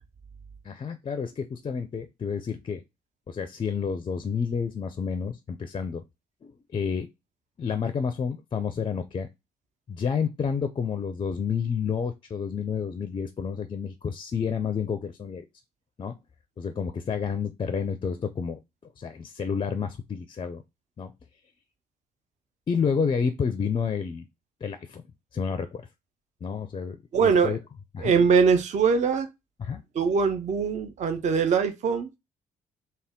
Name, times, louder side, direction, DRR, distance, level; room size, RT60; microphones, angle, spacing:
voice 1, 0.6-2.8 3.3-6.0 6.4-7.1 7.6-9.3 9.9-15.5 16.0-16.1 16.6-18.6 19.0-20.6 21.0-21.1 22.7-24.3 24.6-25.0 25.3-25.8 26.4-27.0 27.2-27.6 27.9-28.2 29.6-29.8, left 6 dB, 25° left, 0.4 m, -30 dB
voice 2, 27.1-27.6 28.0-29.3 30.0-32.1, right 5 dB, 40° right, 0.5 m, -22 dB
3.4 x 2.2 x 3.5 m
figure-of-eight pair, 45°, 19 cm